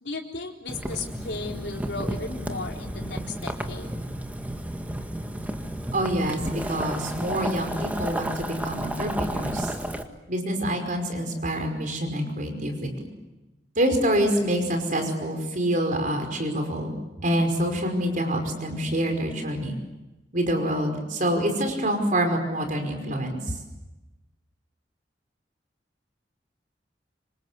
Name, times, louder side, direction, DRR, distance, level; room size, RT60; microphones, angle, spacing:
voice 1, 0.0-3.9, left 3 dB, 90° left, 1 dB, 3.9 m, -35 dB
Boiling, 0.7-10.0, right 1 dB, 10° right, 1.8 m, -32 dB
voice 2, 5.9-9.7 10.3-12.9 13.8-17.0 17.2-19.7 20.3-23.4, right 1 dB, 50° right, 4 dB, 5.3 m, -26 dB
26.5 x 26.0 x 8.2 m, 1.1 s
head